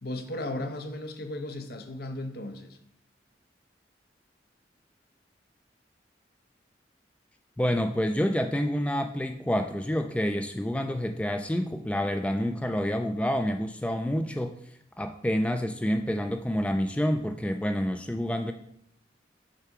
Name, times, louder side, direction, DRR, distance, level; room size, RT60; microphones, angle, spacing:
voice 1, 0.0-2.8, left 1 dB, 60° left, 6 dB, 0.8 m, -35 dB
voice 2, 7.6-14.6 15.0-18.5, equal, 5° left, 6 dB, 0.3 m, -28 dB
6.6 x 4.6 x 5.9 m, 0.75 s
head